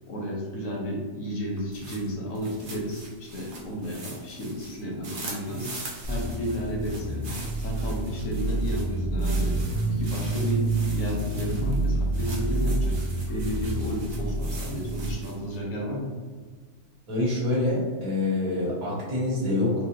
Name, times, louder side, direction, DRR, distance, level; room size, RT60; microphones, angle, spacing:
voice 1, 0.1-5.7 6.1-9.6 9.9-10.7 10.9-16.1, equal, 65° left, -2 dB, 1.1 m, -32 dB
sound 1, 1.6-15.6, right 2 dB, 45° right, 0.7 m, -43 dB
sound 2, 6.0-15.1, right 2 dB, 45° left, 1.0 m, -28 dB
voice 2, 17.1-19.7, left 2 dB, 75° right, -6 dB, 1.8 m, -26 dB
4.4 x 2.8 x 2.5 m, 1.4 s
omnidirectional pair, 1.6 m